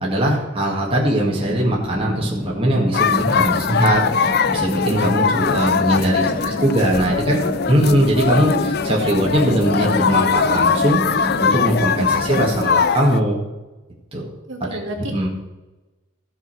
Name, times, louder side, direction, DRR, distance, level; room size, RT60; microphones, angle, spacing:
voice 1, 0.0-7.4 7.7-11.0 11.4-13.4 14.1-14.3 14.7-14.8 15.1-15.3, right 1 dB, 25° right, -3 dB, 1.9 m, -20 dB
sound 1, 1.3-12.6, equal, 5° right, 1.4 m, -30 dB
sound 2, 2.9-13.2, left 6 dB, 50° left, 0.4 m, -21 dB
voice 2, 6.2-6.9 7.2-7.6 14.5-15.3, right 1 dB, 65° right, 0 dB, 2.3 m, -35 dB
14.0 x 5.5 x 6.3 m, 1.1 s
head